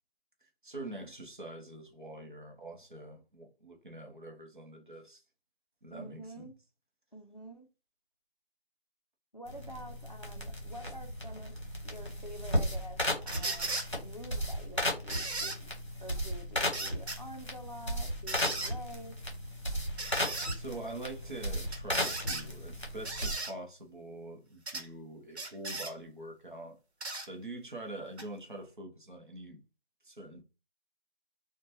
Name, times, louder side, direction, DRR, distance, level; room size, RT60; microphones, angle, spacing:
voice 1, 0.4-5.2 5.8-6.5 20.5-26.8 27.2-29.6 30.0-30.4, right 2 dB, 50° right, 0.7 m, -44 dB
voice 2, 5.9-6.5 7.1-7.7 9.3-11.6 11.8-13.7 14.0-15.7 16.0-19.2, right 1 dB, 45° left, 0.4 m, -48 dB
sound 1, 9.5-23.3, equal, 30° left, 0.9 m, -35 dB
sound 2, 13.3-13.9 15.1-15.6 16.7-17.2 18.3-18.7 20.0-20.6 21.7-22.4 23.0-23.5 24.7-24.9 25.3-25.9 27.0-27.3 28.2-28.3, right 2 dB, 90° right, 0.9 m, -36 dB
3.0 x 2.2 x 2.6 m
figure-of-eight pair, 180°, 32 cm